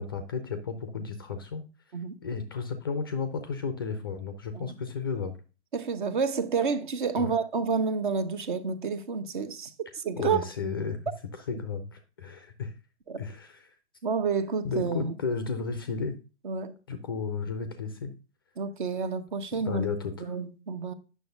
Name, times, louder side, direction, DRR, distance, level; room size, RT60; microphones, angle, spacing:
voice 1, 0.0-1.7 2.2-5.4 7.2-7.3 10.2-11.0 11.5-12.7 13.2-13.7 14.6-16.2 16.9-18.2 19.5-20.4, left 5 dB, 20° left, 0.4 m, -33 dB
voice 2, 5.7-10.4 13.1-13.2 14.0-15.1 16.4-16.7 18.6-19.9 20.2-20.9, right 5 dB, 45° right, 0.9 m, -29 dB
9.2 x 6.3 x 2.5 m
figure-of-eight pair, 125°, 35 cm